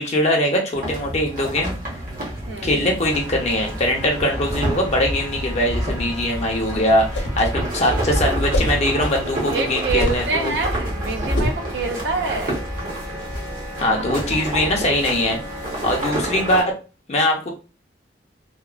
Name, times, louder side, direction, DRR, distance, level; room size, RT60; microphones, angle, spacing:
voice 1, 0.0-1.8 2.6-10.5 13.8-15.4 15.8-16.7 17.1-17.5, left 1 dB, 35° left, 0 dB, 0.5 m, -21 dB
sound 1, 0.7-16.6, right 1 dB, 50° right, 0.9 m, -28 dB
voice 2, 2.5-2.8 9.5-12.6 13.8-14.5, right 4 dB, 70° right, 5 dB, 0.5 m, -27 dB
sound 2, 3.0-16.5, equal, 25° right, 0.6 m, -36 dB
sound 3, 7.0-7.5 8.5-8.9 9.9-10.3 11.4-11.7, equal, 75° left, 0.8 m, -23 dB
2.8 x 2.0 x 2.4 m, 0.33 s
head